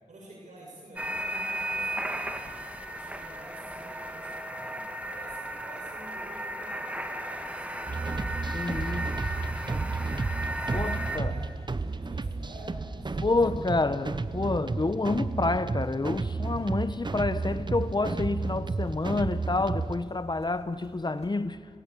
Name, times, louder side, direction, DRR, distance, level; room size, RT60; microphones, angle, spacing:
voice 1, 0.1-2.4 2.7-8.9 9.4-10.3 10.6-11.6 11.9-13.4 13.6-13.8, right 1 dB, 90° right, 6.1 m, -50 dB
sound 1, 1.0-11.2, right 1 dB, 10° right, 2.5 m, -35 dB
sound 2, 2.2-21.3, left 2 dB, 60° left, 3.8 m, -56 dB
sound 3, 7.9-20.0, right 3 dB, 40° right, 0.9 m, -32 dB
voice 2, 8.5-9.2 10.7-11.3 13.2-21.6, left 3 dB, 35° left, 0.9 m, -28 dB
27.0 x 19.5 x 8.4 m
cardioid pair, 50°, 12 cm